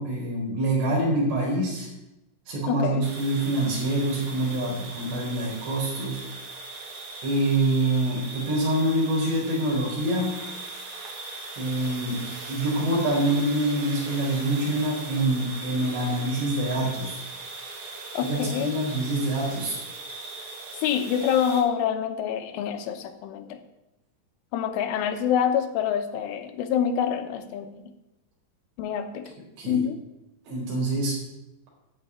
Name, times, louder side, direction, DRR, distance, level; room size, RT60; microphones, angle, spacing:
voice 1, 0.0-1.9 2.5-6.2 7.2-10.3 11.5-12.2 12.5-17.2 18.2-19.8 29.6-29.8 30.5-31.1, right 1 dB, 60° right, -4 dB, 6.4 m, -26 dB
voice 2, 2.7-3.1 18.1-18.7 20.8-23.6 24.5-27.9 28.8-29.3 29.7-30.0, left 8 dB, 80° left, 7 dB, 3.4 m, -26 dB
sound 1, 3.0-21.6, right 3 dB, 45° right, 1.7 m, -39 dB
13.0 x 5.2 x 9.2 m, 0.94 s
omnidirectional pair, 5.6 m